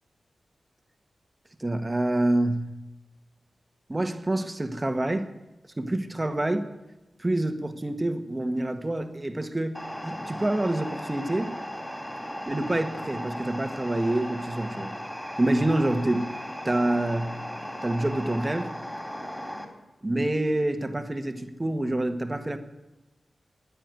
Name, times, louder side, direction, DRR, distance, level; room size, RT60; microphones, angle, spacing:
voice 1, 1.6-2.7 3.9-5.3 5.8-6.7 7.2-11.5 12.4-14.9 15.4-16.3 16.6-17.3 17.8-18.7 20.0-22.6, right 1 dB, 25° right, 8 dB, 1.6 m, -27 dB
sound 1, 9.7-19.6, equal, 10° left, 3.6 m, -37 dB
14.5 x 9.9 x 9.5 m, 1.1 s
cardioid pair, 65°, 0 cm